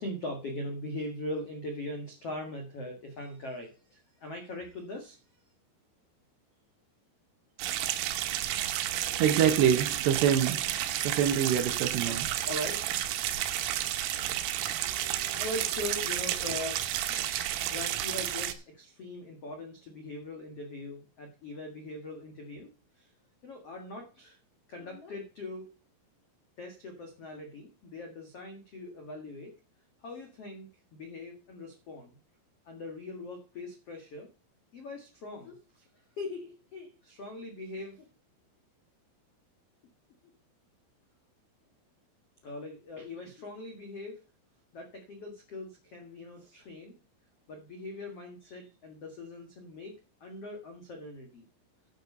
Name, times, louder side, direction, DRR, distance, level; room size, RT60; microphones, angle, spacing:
voice 1, 0.0-5.2 7.9-9.4 12.0-12.2 12.4-12.8 15.4-22.7 23.0-23.1 23.4-24.4 24.7-25.7 26.6-29.5 30.0-32.2 32.6-34.3 34.7-35.8 36.2-38.0 42.4-44.2 44.7-46.9 47.5-49.9 50.2-51.4, left 2 dB, 85° left, 3 dB, 1.3 m, -41 dB
sound 1, 7.6-18.5, right 12 dB, 90° right, 3.7 m, -31 dB
voice 2, 9.2-10.6 11.0-12.3, right 9 dB, 70° right, 6 dB, 2.9 m, -25 dB
12.0 x 6.5 x 5.4 m, 0.33 s
omnidirectional pair, 6.0 m